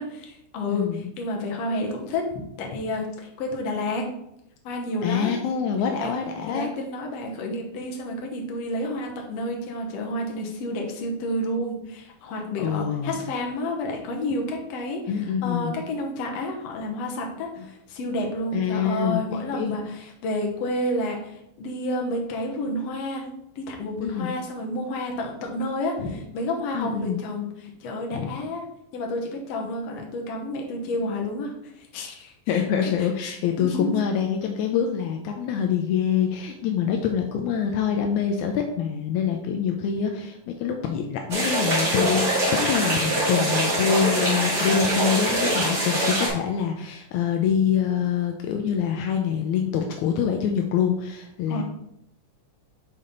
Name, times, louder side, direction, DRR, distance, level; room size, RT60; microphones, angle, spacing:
voice 1, 0.0-2.3 2.6-4.1 4.6-5.3 6.0-6.2 6.5-23.3 23.5-28.6 28.9-34.0 51.5-51.6, left 1 dB, 65° left, 1 dB, 1.6 m, -30 dB
voice 2, 0.7-1.1 5.0-6.7 12.6-13.2 15.1-15.8 18.5-19.7 24.0-24.3 26.7-27.2 28.1-28.4 32.5-51.6, left 7 dB, 85° left, 3 dB, 1.6 m, -25 dB
sound 1, 41.3-46.3, right 1 dB, 30° right, 1.6 m, -23 dB
6.9 x 4.2 x 3.8 m, 0.79 s
omnidirectional pair, 4.0 m